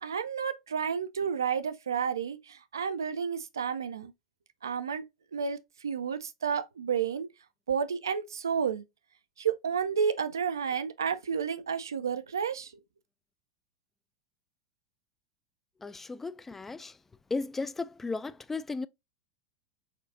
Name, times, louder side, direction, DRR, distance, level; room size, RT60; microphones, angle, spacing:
voice 1, 0.0-4.1 4.6-5.0 5.3-7.3 7.7-8.8 9.4-12.7, right 7 dB, 80° right, 0.5 m, -31 dB
voice 2, 15.8-17.0 17.3-18.9, left 3 dB, 15° left, 0.3 m, -35 dB
5.9 x 2.5 x 2.6 m
figure-of-eight pair, 85°, 2 cm